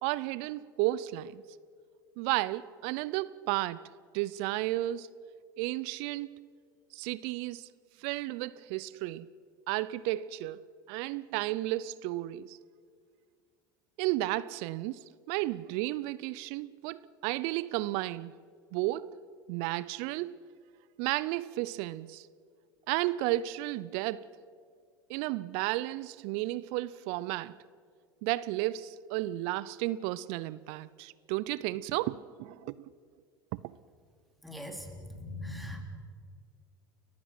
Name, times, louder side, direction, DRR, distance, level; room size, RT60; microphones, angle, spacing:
voice 1, 0.0-1.4 2.2-3.9 4.1-5.1 5.6-6.5 6.9-7.7 8.0-9.3 9.7-12.6 14.0-18.3 18.7-19.2 19.5-20.4 21.0-22.3 22.9-24.3 25.1-27.6 28.2-32.8 33.6-33.8, right 17 dB, 60° right, 0.5 m, -33 dB
voice 2, 34.4-35.8, left 1 dB, ahead, 3.5 m, -41 dB
30.0 x 15.0 x 5.9 m
hypercardioid pair, 75°, 11 cm